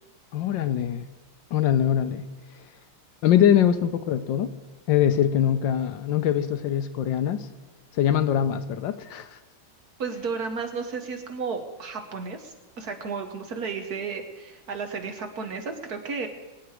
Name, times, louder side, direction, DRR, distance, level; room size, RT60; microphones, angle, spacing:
voice 1, 0.3-1.1 1.5-2.2 3.2-4.5 4.9-7.4 7.9-9.4, left 10 dB, 75° left, 11 dB, 1.3 m, -23 dB
voice 2, 10.0-16.3, right 5 dB, 55° right, 6 dB, 1.6 m, -33 dB
22.0 x 9.2 x 4.9 m, 1.2 s
omnidirectional pair, 2.2 m